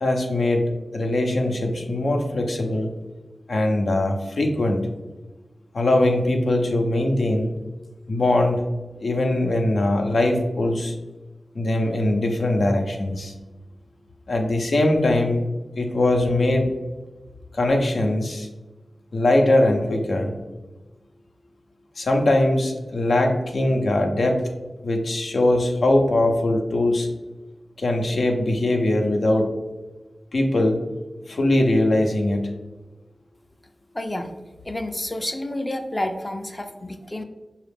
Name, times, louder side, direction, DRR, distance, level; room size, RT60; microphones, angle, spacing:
voice 1, 0.0-2.9 3.5-4.9 5.7-7.5 8.1-8.6 9.0-10.9 11.5-13.3 14.3-15.4 15.8-16.7 17.5-18.5 19.1-20.4 22.0-24.4 24.8-27.1 27.8-29.5 30.3-30.8 31.3-32.5, left 1 dB, 75° left, 3 dB, 0.6 m, -21 dB
voice 2, 33.9-34.3 34.6-37.2, left 1 dB, 25° left, 5 dB, 0.4 m, -29 dB
5.6 x 2.4 x 3.4 m, 1.1 s
cardioid pair, 55°, 0 cm